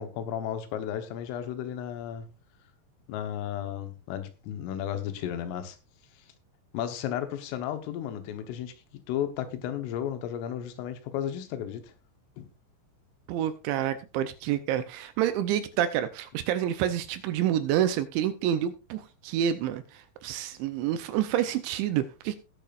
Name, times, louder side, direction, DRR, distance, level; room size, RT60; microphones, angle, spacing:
voice 1, 0.0-2.3 3.1-5.8 6.7-8.7 9.1-11.8 12.4-12.5, left 10 dB, 85° left, 3.8 m, -33 dB
voice 2, 13.3-22.4, right 11 dB, 80° right, 2.8 m, -28 dB
19.5 x 6.9 x 2.5 m
omnidirectional pair, 5.6 m